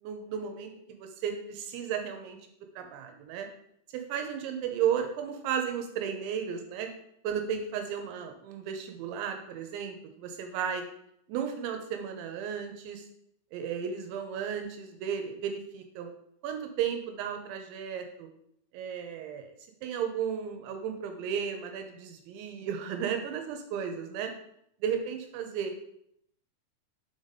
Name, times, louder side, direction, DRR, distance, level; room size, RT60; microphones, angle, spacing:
voice 1, 0.0-0.7 1.2-2.4 2.8-3.5 3.9-6.9 7.2-10.8 11.3-13.1 13.5-16.1 16.4-18.3 18.7-19.5 19.8-24.3 24.8-25.7, right 8 dB, 80° right, 5 dB, 3.0 m, -34 dB
5.8 x 5.0 x 4.1 m, 0.72 s
omnidirectional pair, 5.4 m